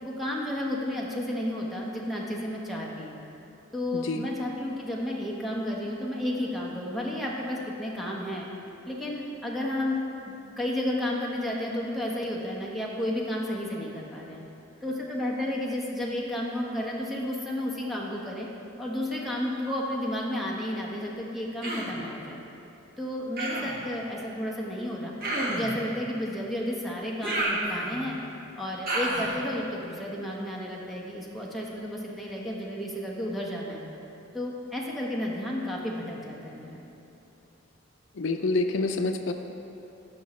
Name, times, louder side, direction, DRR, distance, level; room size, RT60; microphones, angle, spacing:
voice 1, 0.0-3.2 3.7-8.5 8.9-10.0 10.3-14.4 14.8-18.5 18.8-22.4 23.0-25.1 25.5-28.2 28.6-33.8 34.3-36.8, left 1 dB, ahead, -4 dB, 1.1 m, -32 dB
voice 2, 3.9-4.3 38.2-39.3, left 3 dB, 70° left, 6 dB, 0.5 m, -27 dB
Human voice, 21.6-22.0 23.4-23.8 25.2-25.8 27.2-28.1 28.9-29.4, right 1 dB, 50° right, 1.5 m, -30 dB
15.5 x 6.2 x 3.2 m, 3.0 s
head